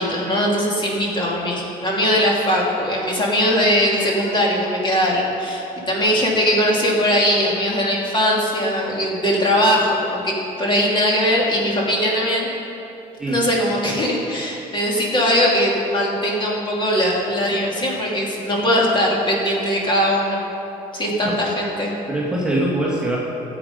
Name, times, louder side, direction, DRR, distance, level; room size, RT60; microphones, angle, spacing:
voice 1, 0.0-12.5 13.3-20.4 20.9-21.9, equal, 30° left, -3 dB, 2.7 m, -20 dB
voice 2, 17.5-17.9 21.2-21.4 22.1-23.2, right 1 dB, 5° right, -5 dB, 1.8 m, -23 dB
14.5 x 8.2 x 5.3 m, 2.8 s
cardioid pair, 110°, 17 cm